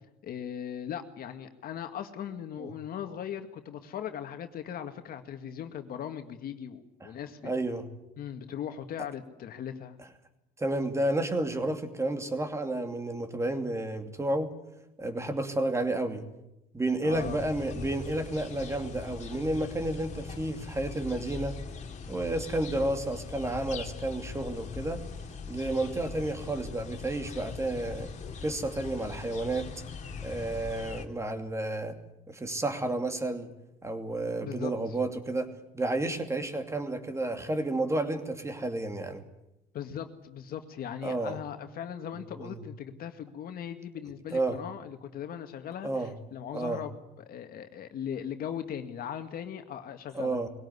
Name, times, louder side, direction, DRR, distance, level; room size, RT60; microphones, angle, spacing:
voice 1, 0.2-7.5 8.2-10.0 17.0-17.4 34.4-34.7 39.7-50.4, left 9 dB, 60° left, 7 dB, 2.1 m, -39 dB
voice 2, 7.4-7.8 10.6-14.5 15.0-16.2 16.7-21.6 22.1-25.0 25.5-28.1 28.4-29.7 30.2-32.0 32.3-33.5 33.8-39.2 41.0-41.4 42.4-42.6 44.3-44.6 45.8-46.1 46.5-46.8 50.1-50.5, right 2 dB, 15° right, 7 dB, 2.6 m, -31 dB
sound 1, 17.1-31.1, left 5 dB, 45° left, 2.5 m, -41 dB
21.5 x 17.5 x 9.8 m, 0.91 s
cardioid pair, 110°, 17 cm